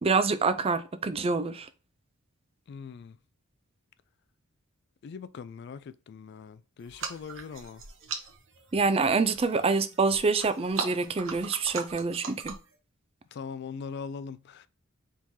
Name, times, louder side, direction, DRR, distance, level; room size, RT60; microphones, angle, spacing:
voice 1, 0.0-1.7 8.7-12.5, right 4 dB, 30° right, 0.4 m, -26 dB
voice 2, 2.7-3.2 5.0-7.8 13.3-14.7, left 5 dB, 55° left, 0.3 m, -41 dB
sound 1, 6.8-12.8, right 5 dB, 65° right, 0.9 m, -40 dB
4.6 x 3.6 x 2.7 m
head